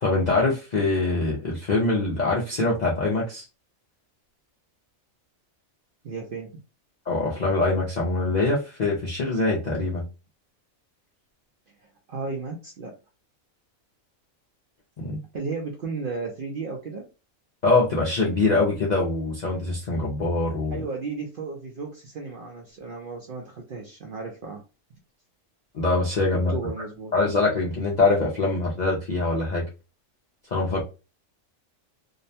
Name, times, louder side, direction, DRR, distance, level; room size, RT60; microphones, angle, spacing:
voice 1, 0.0-3.4 7.1-10.0 15.0-15.2 17.6-20.8 25.7-26.5 27.1-29.6 30.5-30.8, left 3 dB, 60° left, -4 dB, 0.4 m, -23 dB
voice 2, 6.0-6.6 11.8-12.9 15.3-17.0 20.7-24.6 26.5-27.1, right 4 dB, 65° right, 1 dB, 0.5 m, -34 dB
2.6 x 2.1 x 2.7 m, 0.31 s
omnidirectional pair, 1.4 m